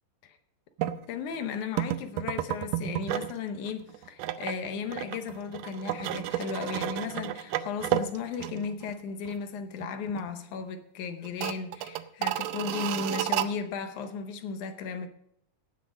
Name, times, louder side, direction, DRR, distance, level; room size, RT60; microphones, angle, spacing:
sound 1, 0.8-1.0 1.8-3.4 3.7-9.0 9.3-9.4 9.8-10.3 10.6-10.7 11.2-13.5, right 13 dB, 80° right, 2.2 m, -32 dB
voice 1, 1.1-15.1, left 5 dB, 70° left, 2.2 m, -35 dB
17.0 x 6.6 x 5.1 m
omnidirectional pair, 3.9 m